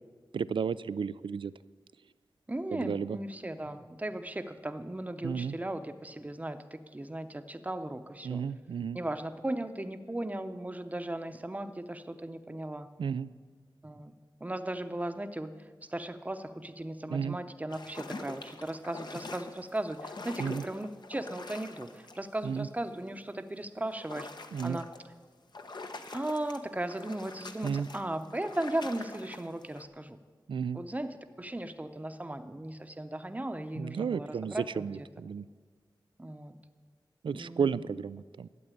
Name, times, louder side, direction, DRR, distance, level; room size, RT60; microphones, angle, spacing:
voice 1, 0.3-1.5 2.7-3.2 5.2-5.6 8.2-9.0 13.0-13.3 17.1-17.4 20.4-20.6 22.4-22.7 24.5-24.8 27.6-27.9 30.5-30.8 33.8-35.5 37.2-38.5, right 6 dB, 85° right, 17 dB, 0.4 m, -33 dB
voice 2, 2.5-8.4 8.9-12.9 13.8-14.1 14.4-24.3 24.6-24.9 26.1-30.2 30.7-35.1 36.2-36.6 37.3-37.8, right 1 dB, 20° right, 9 dB, 0.8 m, -37 dB
sound 1, 17.7-22.4 22.8-23.2 23.9-25.0 25.5-29.8, left 3 dB, 60° left, 1.0 m, -45 dB
12.0 x 7.9 x 9.8 m, 1.5 s
wide cardioid pair, 90°, 8 cm